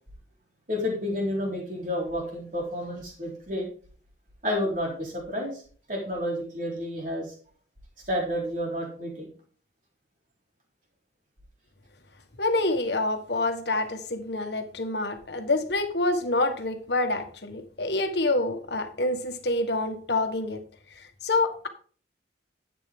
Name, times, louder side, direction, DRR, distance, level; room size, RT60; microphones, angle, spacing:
voice 1, 0.7-3.7 4.4-5.6 5.9-7.3 8.1-9.3, left 1 dB, 45° right, -1 dB, 3.9 m, -30 dB
voice 2, 12.4-20.6 21.2-21.7, left 2 dB, 70° left, 6 dB, 1.4 m, -27 dB
10.5 x 8.3 x 3.7 m, 0.42 s
head